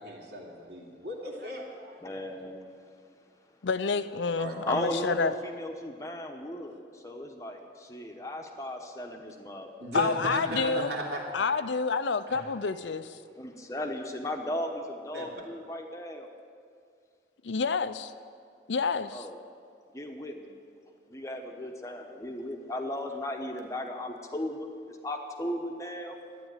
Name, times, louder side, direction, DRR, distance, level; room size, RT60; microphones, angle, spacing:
voice 1, 0.0-2.0 4.3-4.6 8.0-8.1 9.8-11.2 12.3-12.5 15.1-15.3, right 1 dB, 65° right, -2 dB, 2.7 m, -36 dB
voice 2, 2.0-2.6 4.7-9.9 13.4-16.3 19.1-19.4 19.9-20.5 21.1-26.2, left 1 dB, 15° left, 3 dB, 1.0 m, -36 dB
voice 3, 3.6-5.4 9.9-10.9 11.3-13.2 17.4-18.1 18.7-19.3, left 4 dB, 85° left, 12 dB, 0.6 m, -28 dB
12.0 x 9.4 x 9.1 m, 2.2 s
head